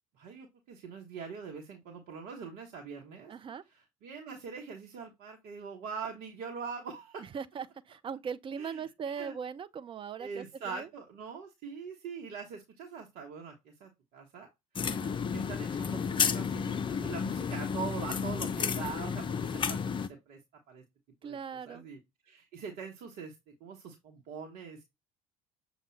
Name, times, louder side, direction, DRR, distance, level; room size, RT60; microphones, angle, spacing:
voice 1, 0.1-3.3 4.0-7.2 8.6-8.8 9.2-9.3 10.2-14.5 15.2-20.4 20.7-20.8 21.2-21.4 21.7-22.0 22.2-24.8, right 5 dB, 55° right, 1.1 m, -43 dB
voice 2, 3.3-3.6 7.2-10.9 14.9-15.2 21.2-21.8, right 7 dB, 30° right, 0.5 m, -40 dB
sound 1, 14.8-20.1, left 6 dB, 25° left, 0.5 m, -32 dB
6.7 x 2.3 x 3.2 m
figure-of-eight pair, 60°, 19 cm